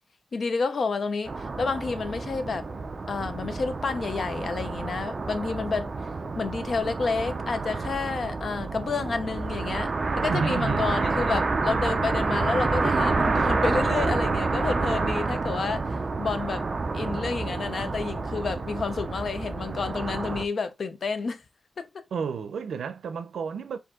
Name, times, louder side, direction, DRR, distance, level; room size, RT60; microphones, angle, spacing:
voice 1, 0.3-2.6 3.1-5.9 6.3-9.9 10.2-16.6 16.9-21.4 21.8-22.0, left 4 dB, 55° left, 0.6 m, -30 dB
sound 1, 1.3-20.4, right 3 dB, 40° right, 0.5 m, -28 dB
voice 2, 10.3-10.9 22.1-23.8, right 6 dB, 85° right, 0.6 m, -31 dB
4.7 x 2.7 x 3.7 m
wide cardioid pair, 125°, 0 cm